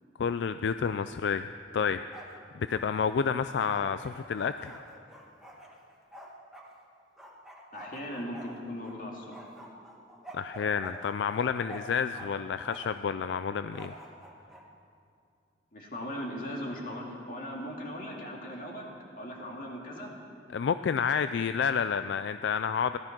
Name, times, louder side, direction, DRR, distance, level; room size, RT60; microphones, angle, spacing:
voice 1, 0.2-1.5 1.7-4.8 10.3-13.9 20.5-23.0, left 6 dB, 80° left, 11 dB, 0.4 m, -30 dB
Bark, 1.8-2.4 2.7-6.7 7.2-9.0 9.3-12.3 12.6-13.0 13.7-14.6, right 1 dB, ahead, 1.7 m, -48 dB
voice 2, 7.7-9.4 15.7-18.9 19.2-20.1, equal, 50° left, -1 dB, 2.6 m, -38 dB
17.0 x 12.5 x 6.1 m, 2.5 s
head